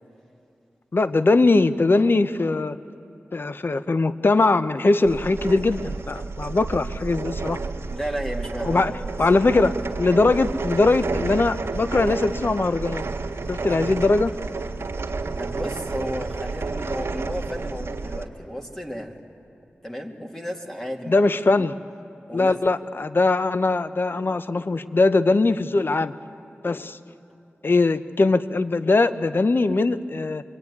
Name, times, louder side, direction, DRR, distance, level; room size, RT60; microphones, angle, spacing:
voice 1, 0.9-2.8 3.3-7.6 8.6-8.9 9.2-13.0 13.5-14.3 21.1-21.7 22.3-26.1 26.6-27.0 27.6-30.4, left 3 dB, 50° left, 12 dB, 0.8 m, -21 dB
sound 1, 5.0-18.2, right 4 dB, 75° right, 1.7 m, -30 dB
voice 2, 7.9-9.2 15.3-19.2 19.8-21.2 21.5-21.7 22.3-22.6, equal, 10° left, 0 dB, 2.7 m, -33 dB
25.0 x 23.5 x 9.6 m, 2.7 s
cardioid pair, 45°, 5 cm